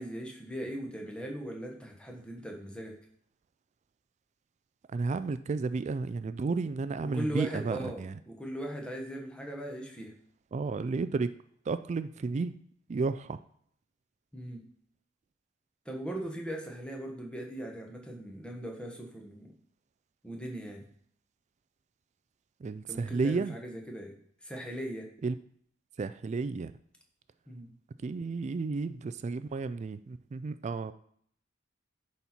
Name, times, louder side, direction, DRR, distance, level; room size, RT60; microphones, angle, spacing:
voice 1, 0.0-3.0 7.0-10.1 14.3-14.6 15.8-19.5 20.2-20.8 22.9-24.2 24.4-25.1 27.5-27.7, right 1 dB, 5° left, 1 dB, 1.2 m, -39 dB
voice 2, 4.9-8.1 10.5-11.3 11.7-12.5 12.9-13.4 22.6-23.6 25.2-25.3 26.0-26.7 28.0-30.9, right 4 dB, 35° right, 13 dB, 0.3 m, -32 dB
10.5 x 4.3 x 4.3 m, 0.63 s
head